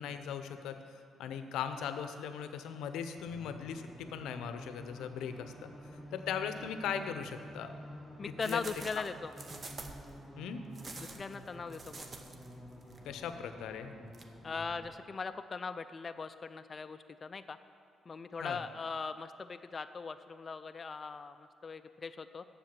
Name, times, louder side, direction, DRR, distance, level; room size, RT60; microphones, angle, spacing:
voice 1, 0.0-5.7 6.1-7.7 8.3-8.6 10.4-10.6 13.0-13.9 18.4-18.6, left 7 dB, 85° left, 9 dB, 0.6 m, -39 dB
sound 1, 3.2-14.9, equal, 5° right, 1.5 m, -50 dB
voice 2, 8.2-9.3 11.0-12.1 14.4-17.6 18.1-22.4, left 4 dB, 35° left, 10 dB, 0.3 m, -40 dB
sound 2, 8.4-10.1 10.7-12.5 12.8-13.0 14.1-14.2, right 3 dB, 40° right, 0.8 m, -47 dB
7.6 x 6.7 x 7.4 m, 2.5 s
cardioid pair, 90°, 0 cm